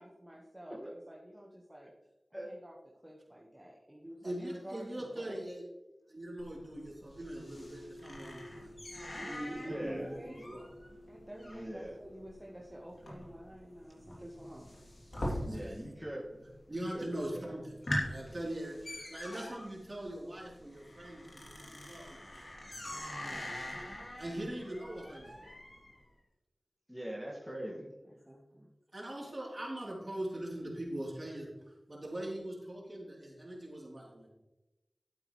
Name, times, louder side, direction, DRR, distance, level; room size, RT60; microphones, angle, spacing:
voice 1, 0.0-1.9 2.4-2.8 3.0-5.4 9.1-10.4 11.1-14.7 27.7-28.7, equal, 15° right, -3 dB, 1.4 m, -50 dB
voice 2, 4.2-5.6 6.1-8.7 9.3-10.7 15.1-15.9 16.4-22.4 22.9-23.5 23.9-25.4 28.9-31.5 31.9-34.3, right 1 dB, 45° right, -3 dB, 3.5 m, -42 dB
sound 1, 6.4-16.0 16.2-16.8 17.2-17.3 17.6-26.0, left 1 dB, 65° left, 3.0 m, -43 dB
sound 2, 7.4-19.3, left 1 dB, 20° left, 3.4 m, -57 dB
voice 3, 9.6-10.1 11.5-12.0 15.4-16.3 16.9-17.1 17.3-17.5 26.9-27.9, equal, ahead, -3 dB, 2.0 m, -41 dB
11.5 x 8.6 x 3.2 m, 1.0 s
wide cardioid pair, 50°, 0 cm